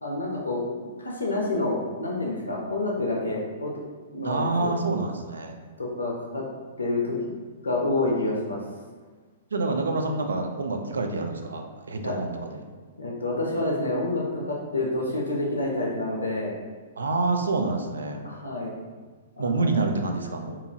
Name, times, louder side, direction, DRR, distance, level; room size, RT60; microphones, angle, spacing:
voice 1, 0.0-3.7 4.1-4.7 5.8-6.4 6.8-7.2 7.6-8.6 12.0-12.2 13.0-16.5 18.2-18.7 19.4-19.8, left 2 dB, 90° left, -2 dB, 0.4 m, -28 dB
voice 2, 4.2-5.5 9.5-12.6 17.0-18.2 19.4-20.6, right 3 dB, 80° right, 4 dB, 0.3 m, -27 dB
2.8 x 2.4 x 2.7 m, 1.4 s
hypercardioid pair, 115°, 0 cm